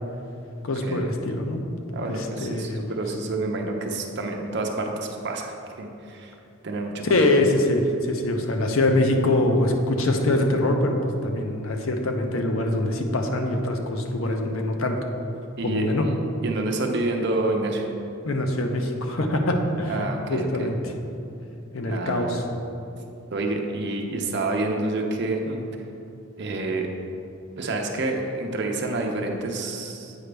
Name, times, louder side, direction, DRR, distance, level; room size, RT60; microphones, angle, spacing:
voice 1, 0.6-1.6 2.2-2.9 7.0-15.0 15.6-16.1 18.2-20.8 21.7-22.4, left 1 dB, 75° left, 4 dB, 0.7 m, -24 dB
voice 2, 1.9-5.5 5.8-6.3 6.6-7.3 15.6-16.0 16.4-17.9 19.9-20.7 21.9-22.4 23.3-25.6 26.4-26.9 27.6-30.1, right 2 dB, 55° right, 2 dB, 0.7 m, -28 dB
8.2 x 5.1 x 3.4 m, 2.7 s
head